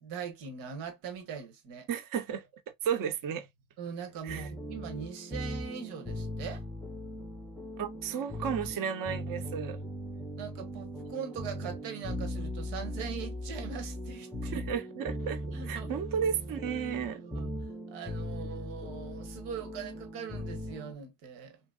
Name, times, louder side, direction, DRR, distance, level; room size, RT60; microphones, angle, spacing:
voice 1, 0.0-1.9 3.8-6.6 10.3-14.6 15.5-15.9 17.1-17.5 17.9-21.6, right 7 dB, 80° right, 1.1 m, -41 dB
voice 2, 1.9-2.5 2.8-3.5 4.2-4.5 7.8-9.8 14.5-15.4 15.7-17.2, right 7 dB, 45° right, 0.7 m, -33 dB
sound 1, 4.3-20.9, equal, ahead, 0.5 m, -39 dB
2.9 x 2.8 x 2.3 m
supercardioid pair, 75°, 48 cm